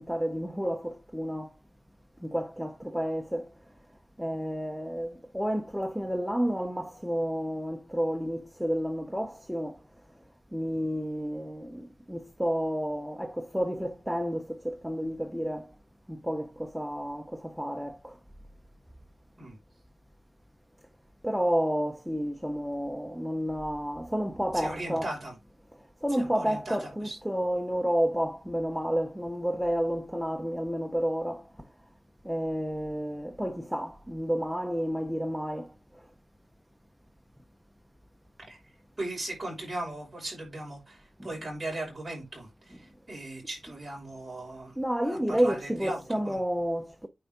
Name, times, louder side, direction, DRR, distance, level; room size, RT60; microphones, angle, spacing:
voice 1, 0.0-1.5 2.2-3.5 4.2-9.8 10.5-15.7 16.1-18.2 21.2-25.1 26.0-31.5 32.2-35.7 44.8-47.1, equal, ahead, 0.7 m, -30 dB
voice 2, 24.5-25.3 26.2-27.2 38.5-38.6 39.0-44.7 45.0-46.4, right 1 dB, 20° right, 5.8 m, -38 dB
9.1 x 4.8 x 3.7 m
wide cardioid pair, 120°, 0 cm